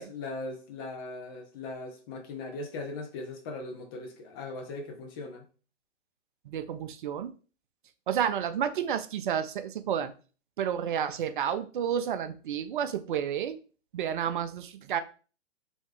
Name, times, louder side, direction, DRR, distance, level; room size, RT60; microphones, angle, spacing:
voice 1, 0.0-5.5, left 2 dB, 20° left, 0.5 m, -39 dB
voice 2, 6.5-7.3 8.1-10.1 10.6-13.6 13.9-15.0, right 9 dB, 45° right, 0.5 m, -30 dB
3.2 x 3.1 x 3.1 m
figure-of-eight pair, 125°, 36 cm